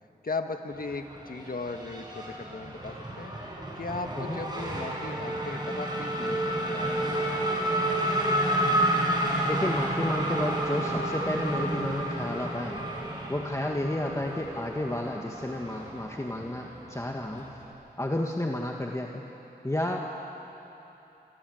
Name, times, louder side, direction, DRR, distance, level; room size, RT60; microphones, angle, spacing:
voice 1, 0.2-3.3 3.8-7.3, left 3 dB, 55° left, 5 dB, 1.7 m, -37 dB
Race car auto racing / Accelerating revving vroom, 0.7-17.7, right 1 dB, 25° right, 6.0 m, -31 dB
voice 2, 9.5-12.9 13.3-17.5 18.0-19.2 19.6-20.2, left 1 dB, 15° left, 0 dB, 1.8 m, -31 dB
26.5 x 25.0 x 8.0 m, 3.0 s
wide cardioid pair, 75°, 17 cm